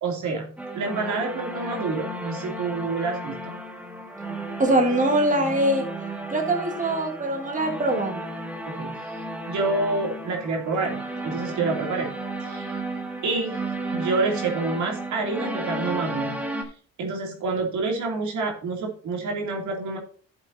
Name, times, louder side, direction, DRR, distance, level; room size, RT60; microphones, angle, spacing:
voice 1, 0.0-3.6 8.7-9.0 9.5-12.1 12.5-12.7 13.2-13.6 13.9-16.7 17.0-20.0, right 3 dB, 75° right, 0 dB, 3.0 m, -28 dB
sound 1, 0.6-16.6, right 2 dB, 5° right, 1.8 m, -33 dB
voice 2, 4.6-5.9 6.3-8.2, right 1 dB, 25° right, 3 dB, 1.7 m, -23 dB
12.0 x 7.8 x 2.8 m, 0.43 s
cardioid pair, 90°, 30 cm